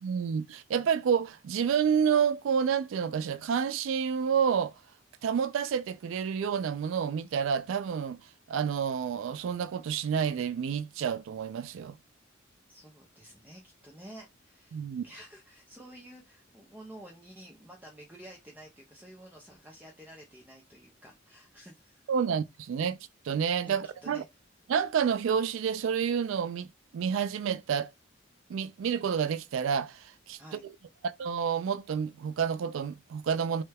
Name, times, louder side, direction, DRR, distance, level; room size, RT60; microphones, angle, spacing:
voice 1, 0.0-4.7 5.2-8.2 8.5-12.0 14.7-15.0 22.1-23.0 23.3-24.2 24.7-26.7 26.9-27.9 28.5-30.7 31.0-33.6, right 7 dB, 75° right, 0.3 m, -29 dB
voice 2, 12.7-22.1 23.6-24.2 30.4-30.6, right 1 dB, 10° right, 0.5 m, -51 dB
3.1 x 2.2 x 3.3 m
head